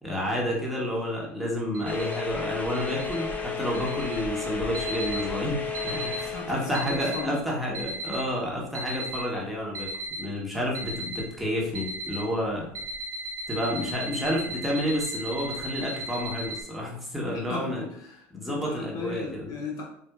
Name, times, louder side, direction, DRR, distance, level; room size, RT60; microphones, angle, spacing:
voice 1, 0.0-9.9 10.2-12.7 13.5-17.8 18.3-19.5, equal, ahead, -4 dB, 1.2 m, -30 dB
sound 1, 1.7-2.2 2.7-3.2 3.7-4.2 4.7-5.3 5.7-6.3 6.7-7.3 7.7-8.3 8.7-9.3 9.7-10.3 10.7-11.3 11.7-12.3 12.7-16.6, right 1 dB, 45° right, 0.9 m, -36 dB
sound 2, 1.8-6.9, left 5 dB, 25° left, 0.6 m, -33 dB
voice 2, 6.1-7.4 17.3-19.8, left 4 dB, 55° left, 0 dB, 0.8 m, -37 dB
4.3 x 2.4 x 2.4 m, 0.71 s
supercardioid pair, 90°, 7 cm